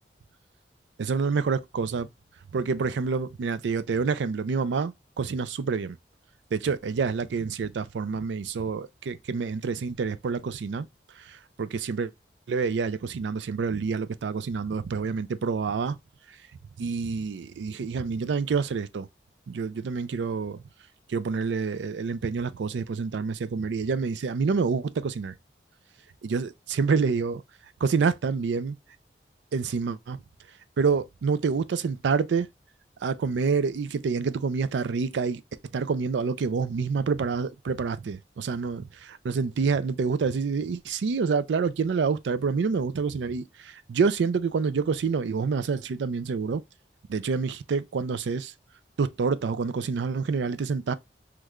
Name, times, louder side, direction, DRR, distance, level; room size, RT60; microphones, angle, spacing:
voice 1, 1.0-2.1 2.5-6.0 6.5-10.9 11.3-12.1 12.5-16.0 16.8-19.1 19.5-20.6 21.1-25.3 26.2-27.4 27.8-28.8 29.5-30.2 30.8-32.5 33.0-35.4 35.7-46.6 47.1-48.5 49.0-50.9, right 5 dB, 80° right, 0.4 m, -27 dB
3.1 x 2.2 x 3.5 m
head